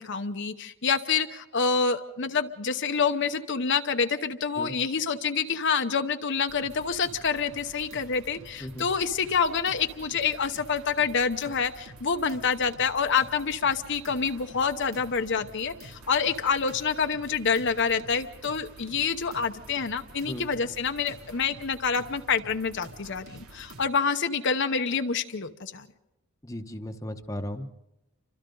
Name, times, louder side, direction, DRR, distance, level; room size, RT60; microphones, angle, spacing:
voice 1, 0.0-25.9, left 5 dB, 55° left, 7 dB, 0.9 m, -27 dB
sound 1, 6.5-23.9, right 2 dB, 80° right, 2.6 m, -48 dB
voice 2, 26.4-27.7, left 1 dB, 15° left, 6 dB, 1.0 m, -36 dB
29.0 x 25.5 x 3.9 m, 0.97 s
head